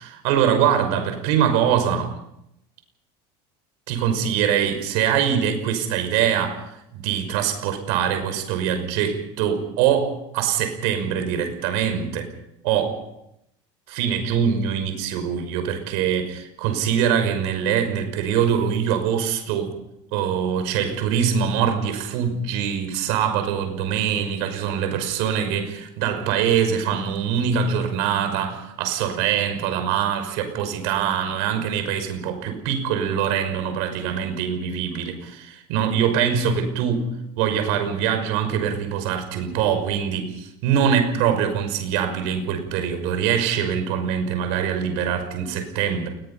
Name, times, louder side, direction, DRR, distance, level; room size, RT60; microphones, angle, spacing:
voice 1, 0.0-2.1 3.9-12.3 12.6-13.0 13.9-19.7 20.1-37.1 37.4-46.1, right 8 dB, 60° right, 7 dB, 5.8 m, -23 dB
28.5 x 21.0 x 5.7 m, 0.82 s
cardioid pair, 175°, 13 cm